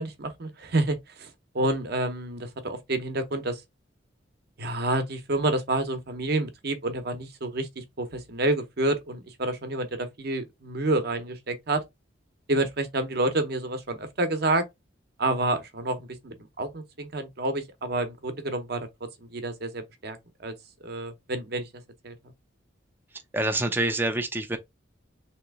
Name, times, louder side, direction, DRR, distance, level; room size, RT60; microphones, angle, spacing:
voice 1, 0.0-3.6 4.6-11.8 12.5-14.6 15.2-18.9 19.3-20.5 20.8-21.7 22.0-22.1, right 2 dB, 55° right, 0.8 m, -29 dB
voice 2, 23.3-24.6, right 2 dB, 10° right, 0.4 m, -26 dB
3.3 x 2.9 x 3.5 m
head